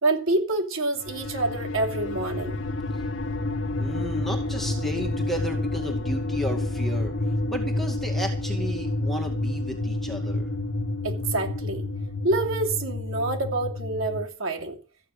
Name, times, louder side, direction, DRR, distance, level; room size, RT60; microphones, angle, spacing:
voice 1, 0.0-2.5 11.0-11.9 12.2-14.8, right 2 dB, 85° right, 2 dB, 3.0 m, -27 dB
sound 1, 1.0-14.3, left 2 dB, 60° left, 1.1 m, -29 dB
voice 2, 3.8-7.1 7.5-10.5, equal, ahead, 1 dB, 2.2 m, -33 dB
14.5 x 9.4 x 6.7 m, 0.38 s
head